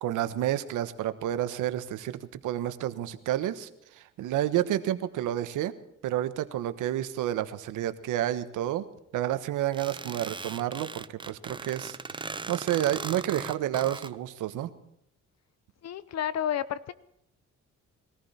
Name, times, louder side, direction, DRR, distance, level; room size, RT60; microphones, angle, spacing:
voice 1, 0.0-5.7 6.0-8.8 9.1-12.0 12.5-14.7, right 12 dB, 85° right, 11 dB, 1.2 m, -30 dB
sound 1, 9.7-14.1, right 4 dB, 15° right, 0.6 m, -38 dB
voice 2, 15.8-16.9, left 10 dB, 60° left, 16 dB, 0.8 m, -31 dB
21.5 x 14.5 x 4.3 m, 0.81 s
cardioid pair, 90°, 30 cm